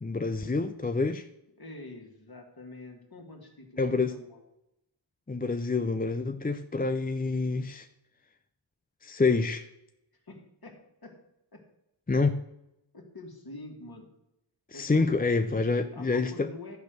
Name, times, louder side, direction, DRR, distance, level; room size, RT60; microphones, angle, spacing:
voice 1, 0.0-1.3 3.8-4.1 5.3-7.9 9.0-9.7 12.1-12.4 14.7-16.5, left 3 dB, 20° left, 8 dB, 0.6 m, -27 dB
voice 2, 1.6-4.4 10.3-11.2 11.5-11.6 12.9-14.1 14.7-15.1 15.4-15.7 15.9-16.8, left 2 dB, 45° left, 2 dB, 2.4 m, -46 dB
12.0 x 4.4 x 6.6 m, 0.85 s
cardioid pair, 45°, 49 cm